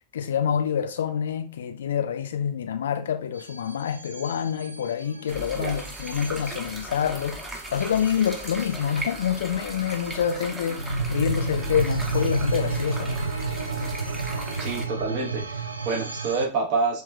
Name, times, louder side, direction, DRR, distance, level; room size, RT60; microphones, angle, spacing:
voice 1, 0.1-7.4 7.7-13.1, left 8 dB, 65° left, 0.4 m, -27 dB
sound 1, 3.4-16.5, right 3 dB, 80° right, 0.3 m, -32 dB
sound 2, 5.3-14.9, right 1 dB, 10° right, 0.6 m, -38 dB
voice 2, 14.6-17.0, right 4 dB, 45° right, 0.9 m, -27 dB
3.1 x 3.1 x 2.3 m
figure-of-eight pair, 90°, 0 cm